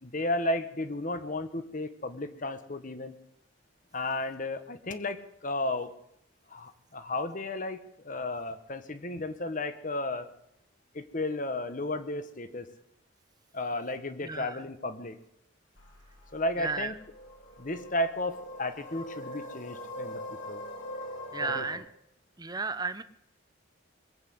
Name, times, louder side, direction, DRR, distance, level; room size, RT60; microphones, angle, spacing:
voice 1, 0.0-3.2 3.9-5.9 6.5-10.3 10.9-12.7 13.5-15.2 16.3-16.9 17.6-20.6 21.4-21.7, left 2 dB, 40° left, 11 dB, 1.1 m, -33 dB
voice 2, 14.2-14.6 16.6-16.9 21.3-21.9 22.4-23.0, right 4 dB, 20° right, 12 dB, 0.7 m, -33 dB
sound 1, 15.8-21.7, left 1 dB, 65° left, 3.0 m, -42 dB
22.0 x 8.2 x 8.1 m, 0.78 s
head